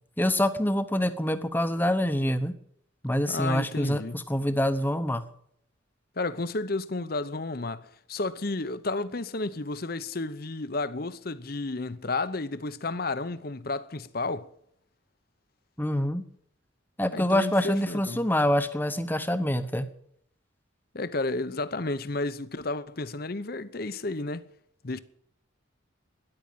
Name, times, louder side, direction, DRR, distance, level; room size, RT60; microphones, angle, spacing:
voice 1, 0.2-2.6 3.0-5.2 15.8-16.2 17.0-19.9, left 1 dB, 10° left, 0.9 m, -26 dB
voice 2, 3.3-4.2 6.2-14.5 17.1-18.3 20.9-24.5 24.8-25.0, left 2 dB, 45° left, 0.8 m, -32 dB
13.5 x 11.0 x 9.1 m
head